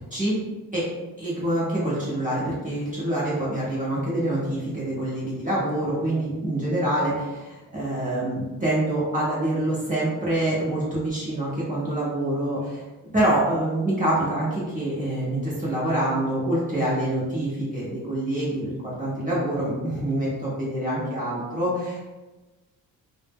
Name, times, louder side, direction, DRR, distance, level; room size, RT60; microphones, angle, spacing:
voice 1, 1.2-12.8 13.1-22.1, right 1 dB, 20° right, -8 dB, 0.7 m, -26 dB
2.1 x 2.0 x 3.3 m, 1.2 s
cardioid pair, 90°, 37 cm